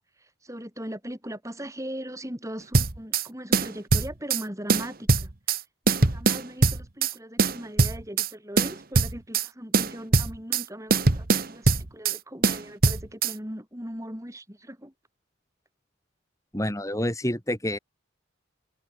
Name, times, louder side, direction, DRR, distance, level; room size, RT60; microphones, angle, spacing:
voice 1, 0.0-5.3 5.9-14.9, equal, 15° right, 5.8 m, -39 dB
sound 1, 2.7-3.3 3.5-4.4 4.7-5.6 5.9-7.1 7.4-8.3 8.6-9.5 9.7-10.6 10.9-12.2 12.4-13.3, right 3 dB, 45° right, 1.5 m, -22 dB
voice 2, 16.5-17.8, left 1 dB, 15° left, 4.1 m, -28 dB
head